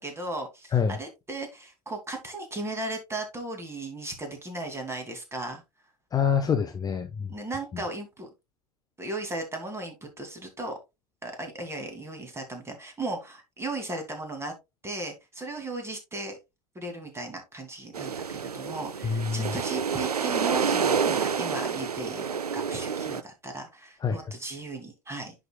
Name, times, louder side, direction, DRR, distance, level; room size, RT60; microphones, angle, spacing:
voice 1, 0.0-5.6 7.3-8.3 9.0-10.7 11.2-14.5 14.8-16.4 16.7-25.3, right 2 dB, 15° right, 2.6 m, -36 dB
voice 2, 6.1-7.3 19.0-19.5 24.0-24.3, left 6 dB, 20° left, 0.7 m, -26 dB
sound 1, 17.9-23.2, right 6 dB, 90° right, 0.4 m, -28 dB
10.5 x 5.1 x 2.3 m
figure-of-eight pair, 85°, 19 cm